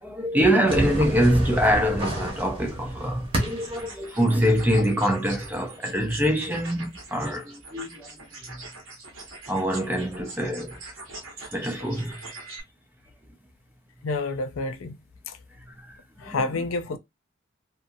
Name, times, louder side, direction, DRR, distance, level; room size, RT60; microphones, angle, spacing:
voice 1, 0.0-8.1 8.5-8.6 9.5-10.8 11.5-12.3 15.8-15.9 16.2-16.4, equal, 10° right, 0.5 m, -24 dB
sound 1, 0.6-3.9, right 1 dB, 25° right, 0.9 m, -30 dB
sound 2, 3.5-12.6, right 3 dB, 85° right, 1.0 m, -43 dB
voice 2, 14.0-15.0 15.3-15.4 16.2-17.0, left 3 dB, 85° left, 0.5 m, -29 dB
2.6 x 2.4 x 2.6 m
head